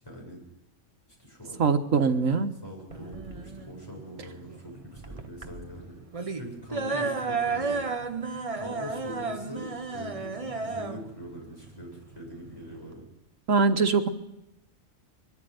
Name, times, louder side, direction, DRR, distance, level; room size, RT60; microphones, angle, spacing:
voice 1, 0.0-0.4 1.2-1.6 2.6-7.9 8.5-13.0, left 1 dB, 15° left, -1 dB, 8.0 m, -43 dB
voice 2, 1.6-2.5 13.5-14.1, right 4 dB, 75° right, 5 dB, 1.8 m, -22 dB
sound 1, 2.9-12.9, right 4 dB, 25° right, 1.1 m, -33 dB
23.0 x 13.5 x 9.4 m, 0.89 s
omnidirectional pair, 1.4 m